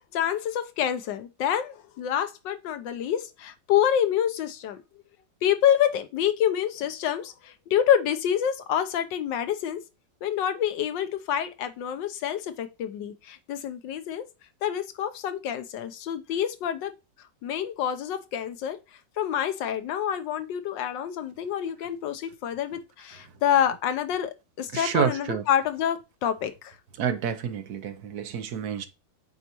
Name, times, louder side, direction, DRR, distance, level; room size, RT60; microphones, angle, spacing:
voice 1, 0.0-4.8 5.4-9.8 10.2-14.2 14.6-16.9 17.4-18.8 19.2-26.7, left 9 dB, 75° left, 1.4 m, -27 dB
voice 2, 24.7-25.4 27.0-28.9, right 8 dB, 60° right, 1.2 m, -28 dB
8.0 x 4.1 x 2.9 m
omnidirectional pair, 2.0 m